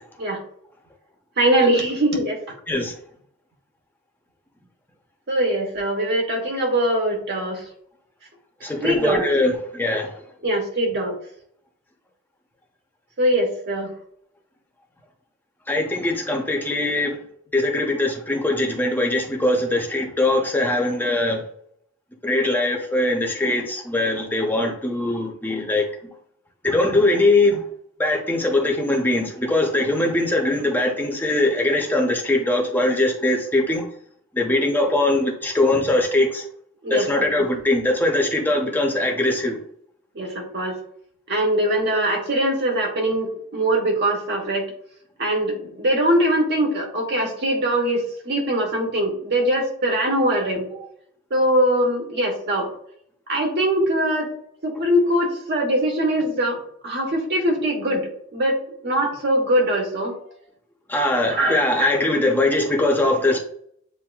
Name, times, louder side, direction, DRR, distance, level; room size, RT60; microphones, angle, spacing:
voice 1, 1.4-2.4 5.3-7.6 8.8-9.3 10.4-11.1 13.2-13.9 36.8-37.5 40.2-40.7 41.3-44.7 45.2-50.7 51.3-52.7 53.3-54.3 54.6-56.6 56.8-58.0 58.3-58.5 58.8-60.1 61.3-61.9, right 1 dB, 50° right, 1.2 m, -22 dB
voice 2, 8.6-10.1 15.7-17.2 17.5-21.4 22.2-25.8 26.6-27.6 28.0-33.9 34.4-36.4 36.9-39.6 60.9-63.4, left 2 dB, 10° left, 0.7 m, -21 dB
7.7 x 2.6 x 2.3 m
head